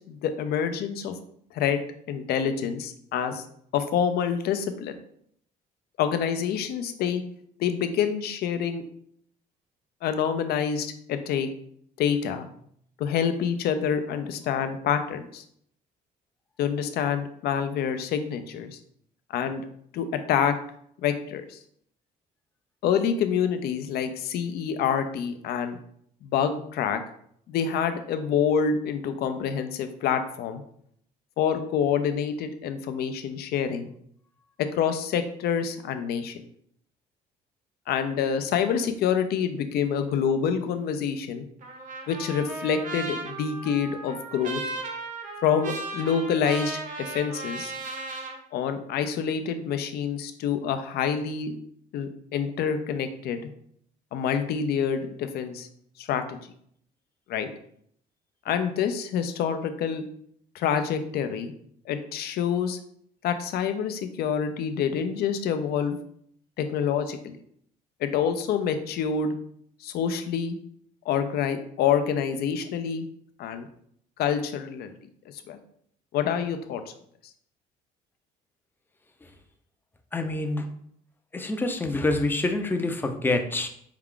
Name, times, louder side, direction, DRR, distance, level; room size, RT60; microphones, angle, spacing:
voice 1, 0.1-1.2 1.5-1.8 2.1-3.4 3.7-4.9 6.0-7.2 7.6-8.8 10.0-11.5 12.0-12.5 13.0-15.4 16.6-18.8 19.3-19.6 19.9-20.5 21.0-21.6 22.8-25.8 26.2-27.0 27.5-30.6 31.4-33.9 34.7-36.4 37.9-41.4 42.1-44.6 45.4-47.7 48.5-51.6 51.9-53.5 54.1-55.7 56.0-56.4 57.3-57.5 58.5-60.0 60.5-61.5 61.9-62.8 63.2-66.0 66.6-67.3 68.0-69.3 69.8-70.6 71.1-73.1 73.4-73.7 74.2-74.9 75.5-75.6 76.1-76.8, left 7 dB, 70° left, 9 dB, 0.5 m, -27 dB
Trumpet, 41.6-48.4, right 3 dB, 50° right, 0.9 m, -36 dB
voice 2, 80.1-80.7 81.3-83.7, left 2 dB, 10° left, 5 dB, 0.5 m, -26 dB
4.7 x 2.3 x 3.7 m, 0.67 s
cardioid pair, 110°, 17 cm